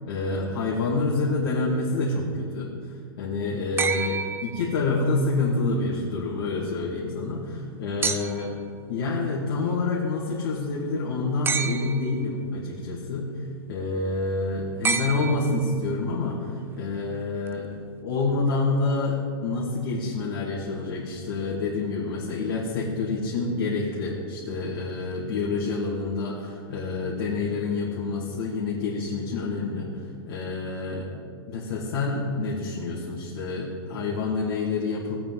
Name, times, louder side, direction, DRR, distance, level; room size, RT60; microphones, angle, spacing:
voice 1, 0.1-8.6 8.9-13.3 13.7-17.7 18.0-31.1 31.5-35.1, left 3 dB, 65° left, -6 dB, 2.4 m, -27 dB
sound 1, 3.8-5.2 8.0-8.6 11.4-12.2 14.8-15.9 17.5-17.6, right 5 dB, 15° right, 0.6 m, -29 dB
16.5 x 8.6 x 4.0 m, 2.1 s
hypercardioid pair, 105°, 13 cm